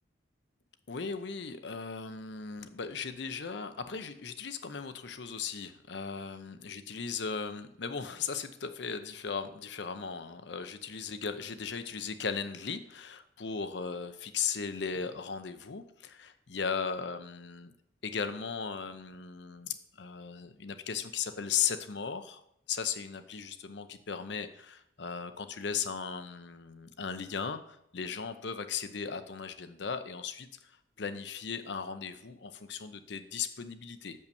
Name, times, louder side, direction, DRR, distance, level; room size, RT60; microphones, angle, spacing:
voice 1, 0.9-17.7 18.0-22.4 22.7-34.3, left 6 dB, 65° left, 9 dB, 0.7 m, -37 dB
6.6 x 5.5 x 6.9 m, 0.75 s
head